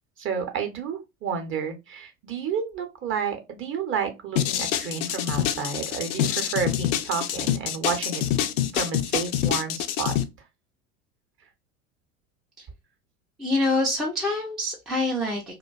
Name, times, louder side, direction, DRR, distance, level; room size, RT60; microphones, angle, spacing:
voice 1, 0.2-8.2 8.7-10.1, right 6 dB, 30° right, 5 dB, 0.7 m, -30 dB
sound 1, 4.4-10.2, left 11 dB, 60° left, 0.5 m, -26 dB
voice 2, 13.4-15.6, left 2 dB, ahead, -2 dB, 0.4 m, -26 dB
2.4 x 2.2 x 2.3 m, 0.23 s
hypercardioid pair, 80°, 42 cm